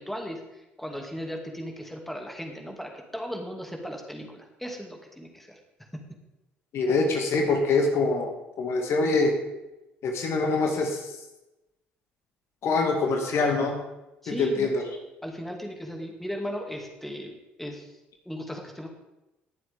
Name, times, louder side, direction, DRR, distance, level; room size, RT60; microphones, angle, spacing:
voice 1, 0.0-5.6 5.9-6.0 14.2-14.7 15.2-17.3 17.6-17.9 18.3-18.9, equal, 5° left, 2 dB, 2.3 m, -36 dB
voice 2, 6.7-9.4 10.0-11.1 12.6-13.8 14.3-15.0, left 3 dB, 55° left, 3 dB, 2.0 m, -24 dB
19.0 x 7.6 x 3.6 m, 0.98 s
hypercardioid pair, 55°, 5 cm